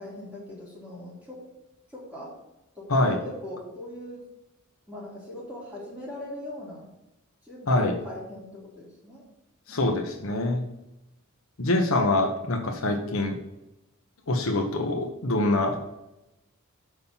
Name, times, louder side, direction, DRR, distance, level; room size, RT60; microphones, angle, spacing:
voice 1, 0.0-1.4 1.9-2.3 2.8-4.2 4.9-6.9 7.4-9.2, left 1 dB, 5° right, -6 dB, 3.6 m, -40 dB
voice 2, 9.7-10.6 11.6-13.3 14.3-15.8, left 2 dB, 65° left, 3 dB, 1.1 m, -24 dB
6.5 x 5.6 x 7.0 m, 0.91 s
head